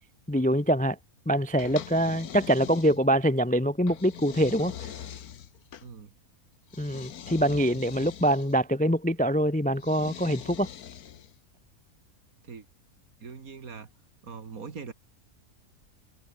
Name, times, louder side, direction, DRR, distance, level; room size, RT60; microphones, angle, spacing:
voice 1, 0.3-1.0 1.3-4.7 6.8-10.7, equal, 10° left, 0.5 m, -24 dB
sound 1, 1.6-3.3 3.9-5.9 6.7-8.6 9.8-11.4, left 9 dB, 85° left, 1.6 m, -42 dB
voice 2, 5.8-6.1 12.4-12.7 13.2-13.9 14.2-14.9, right 5 dB, 70° right, 2.5 m, -41 dB
omnidirectional pair, 1.6 m